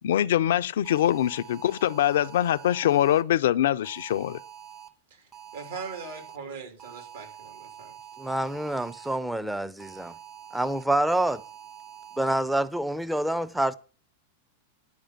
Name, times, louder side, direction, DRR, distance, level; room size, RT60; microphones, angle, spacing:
voice 1, 0.0-4.4, left 11 dB, 65° left, 0.4 m, -23 dB
sound 1, 0.8-3.2 3.8-4.9 5.3-6.4 6.8-9.2 9.8-10.8 11.3-12.3, right 10 dB, 30° right, 1.6 m, -46 dB
voice 2, 5.1-7.9, right 5 dB, 65° right, 3.0 m, -40 dB
voice 3, 8.2-10.1 10.5-11.4 12.2-13.7, right 1 dB, 5° right, 0.6 m, -27 dB
10.5 x 4.9 x 7.2 m
figure-of-eight pair, 95°, 0 cm